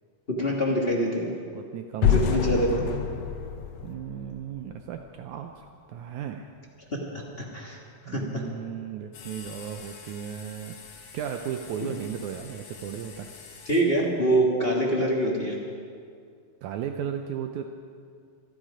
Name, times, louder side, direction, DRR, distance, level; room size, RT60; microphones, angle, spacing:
voice 1, 0.3-1.3 2.0-2.9 7.1-7.8 8.1-8.4 11.8-11.9 13.6-15.6, right 1 dB, 40° left, -2 dB, 0.8 m, -25 dB
voice 2, 1.5-2.9 3.8-6.5 8.1-10.8 11.1-13.3 16.6-17.6, right 9 dB, 75° right, 5 dB, 1.9 m, -35 dB
sound 1, 2.0-5.0, left 8 dB, 65° left, 1.8 m, -27 dB
sound 2, 9.1-13.8, left 5 dB, 85° left, 3.4 m, -46 dB
25.5 x 10.5 x 5.0 m, 2.3 s
omnidirectional pair, 3.7 m